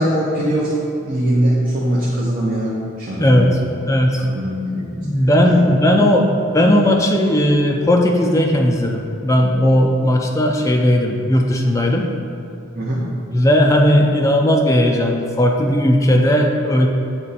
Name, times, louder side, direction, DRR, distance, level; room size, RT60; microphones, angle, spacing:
voice 1, 0.0-3.7 4.2-5.0 5.4-5.6 12.8-13.0, right 1 dB, 40° right, -6 dB, 0.8 m, -21 dB
voice 2, 3.2-3.6 3.8-4.2 5.0-12.1 13.3-16.9, equal, 15° left, 1 dB, 0.4 m, -16 dB
7.8 x 3.2 x 4.0 m, 2.7 s
head